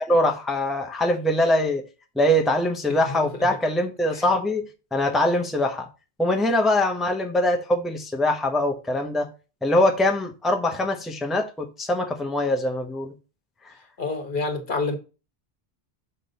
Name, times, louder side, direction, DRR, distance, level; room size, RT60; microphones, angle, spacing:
voice 1, 0.1-1.8 2.2-4.6 4.9-5.9 6.2-9.3 9.6-13.1, left 1 dB, ahead, 0.9 m, -23 dB
voice 2, 3.1-3.5 4.1-4.2 14.0-15.0, left 3 dB, 55° left, 1.5 m, -28 dB
6.6 x 6.1 x 4.0 m
omnidirectional pair, 1.1 m